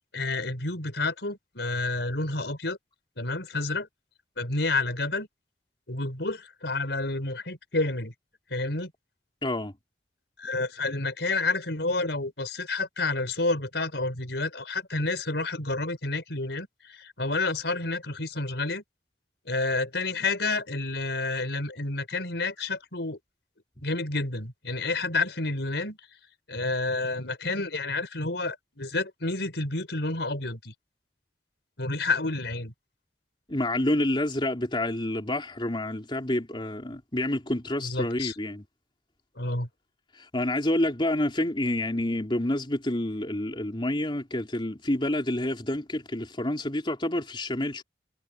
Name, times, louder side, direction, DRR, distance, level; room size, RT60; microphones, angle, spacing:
voice 1, 0.1-2.8 3.2-3.9 4.4-5.3 5.9-8.1 8.5-8.9 10.4-18.8 19.5-23.2 23.8-26.0 26.5-30.7 31.8-32.7 37.8-38.3 39.4-39.7, left 3 dB, 70° left, 5.3 m, -29 dB
voice 2, 9.4-9.7 33.5-38.6 40.1-47.8, left 1 dB, 30° left, 3.6 m, -28 dB
head